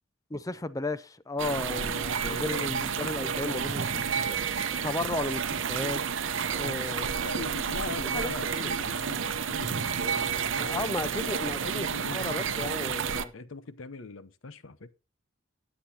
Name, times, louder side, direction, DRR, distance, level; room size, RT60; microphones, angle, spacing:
voice 1, 0.3-4.4 4.8-6.0 6.4-7.2 8.1-8.7 10.6-13.3, left 2 dB, 15° left, 0.5 m, -34 dB
sound 1, 1.4-13.2, right 7 dB, 70° right, 0.7 m, -30 dB
voice 2, 2.2-3.0 3.3-4.2 7.2-10.9 11.2-13.0 13.3-14.9, left 3 dB, 85° left, 0.8 m, -41 dB
18.5 x 7.9 x 2.9 m
head